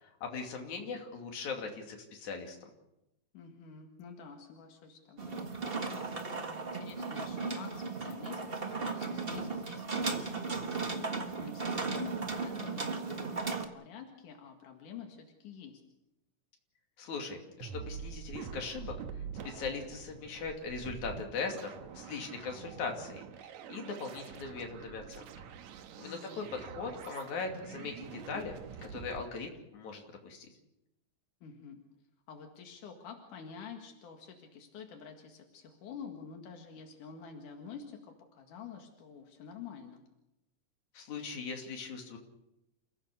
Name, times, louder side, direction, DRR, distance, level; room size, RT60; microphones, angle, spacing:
voice 1, 0.0-2.7 17.0-18.9 19.4-25.2 26.0-28.6 28.8-30.5 40.9-42.2, left 4 dB, 70° left, 2 dB, 4.0 m, -40 dB
voice 2, 3.3-15.8 26.0-26.5 31.4-31.8 32.3-38.0 38.3-40.0, left 6 dB, 90° left, 3 dB, 3.5 m, -49 dB
sound 1, 5.2-13.7, right 4 dB, 35° right, 0.9 m, -36 dB
sound 2, 17.6-29.2, right 7 dB, 70° right, 2.4 m, -46 dB
29.0 x 16.0 x 6.6 m, 0.89 s
omnidirectional pair, 3.5 m